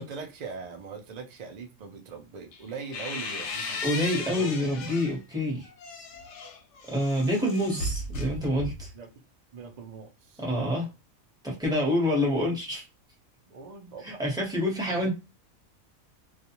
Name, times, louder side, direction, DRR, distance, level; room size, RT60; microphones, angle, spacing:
voice 1, 0.0-4.0 4.3-4.5 8.9-9.1 9.5-10.4 13.5-14.3, right 5 dB, 70° right, 0.4 m, -41 dB
sound 1, 2.5-5.2 5.6-9.0, left 2 dB, 65° left, 0.8 m, -36 dB
voice 2, 3.8-5.7 6.9-8.9 10.4-10.9 11.4-12.8 14.0-15.1, left 1 dB, 5° right, 0.8 m, -27 dB
2.4 x 2.2 x 2.8 m
omnidirectional pair, 1.5 m